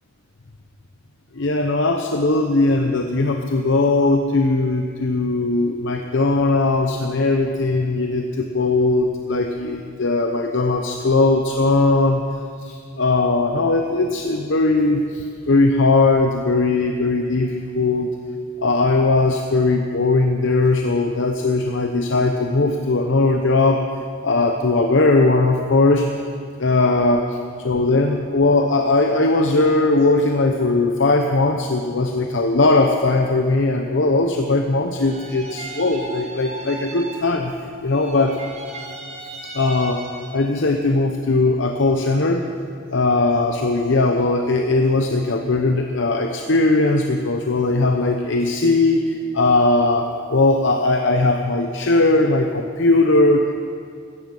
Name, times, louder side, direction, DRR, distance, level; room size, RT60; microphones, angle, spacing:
voice 1, 1.3-12.2 12.6-18.1 18.6-23.9 24.2-26.1 26.6-27.4 27.6-37.5 37.8-38.4 39.2-40.0 40.3-42.4 42.9-53.7, left 2 dB, 70° left, 4 dB, 0.8 m, -19 dB
sound 1, 35.0-37.6 37.9-40.6, right 2 dB, 35° right, 1.8 m, -36 dB
17.0 x 14.0 x 5.5 m, 2.3 s
head